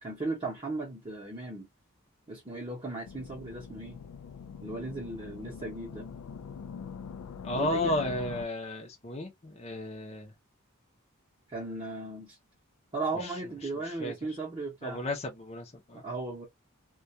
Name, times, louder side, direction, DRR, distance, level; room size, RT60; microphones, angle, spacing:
voice 1, 0.0-1.7 2.3-4.0 4.6-6.1 7.5-8.1 11.5-12.4 12.9-15.0 16.0-16.5, right 2 dB, 25° right, 0.7 m, -36 dB
sound 1, 3.0-8.5, left 6 dB, 80° left, 0.3 m, -43 dB
voice 2, 7.4-10.3 13.1-13.4 13.8-14.1 14.8-16.0, left 1 dB, 30° left, 0.6 m, -33 dB
2.2 x 2.2 x 2.6 m
head